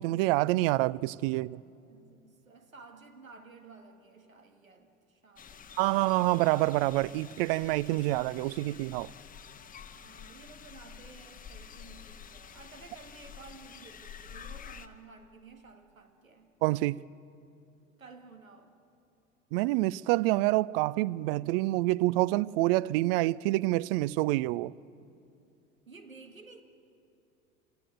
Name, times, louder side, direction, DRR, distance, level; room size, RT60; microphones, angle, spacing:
voice 1, 0.0-1.6 5.8-9.1 16.6-17.0 19.5-24.7, right 18 dB, 45° right, 0.5 m, -27 dB
voice 2, 1.9-5.7 9.9-16.5 18.0-18.8 25.9-26.6, right 4 dB, 85° right, 1.9 m, -53 dB
sound 1, 5.4-14.9, left 7 dB, 20° left, 1.0 m, -49 dB
27.0 x 17.5 x 9.2 m
figure-of-eight pair, 75°, 40 cm